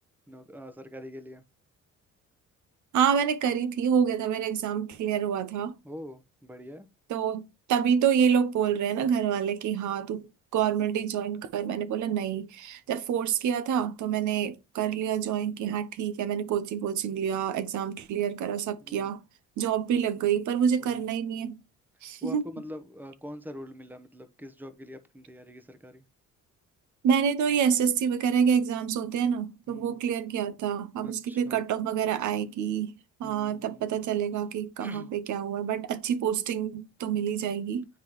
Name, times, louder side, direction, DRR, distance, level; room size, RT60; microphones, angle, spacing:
voice 1, 0.3-1.4 5.8-6.9 18.8-19.1 20.8-21.0 22.2-26.0 29.7-30.0 31.0-31.6 33.2-33.9 34.8-35.1, equal, 5° right, 0.9 m, -44 dB
voice 2, 2.9-5.7 7.1-19.2 19.6-21.6 22.0-22.5 27.0-32.9 33.2-37.9, right 8 dB, 75° right, 0.7 m, -27 dB
9.5 x 3.6 x 3.0 m
cardioid pair, 90°, 30 cm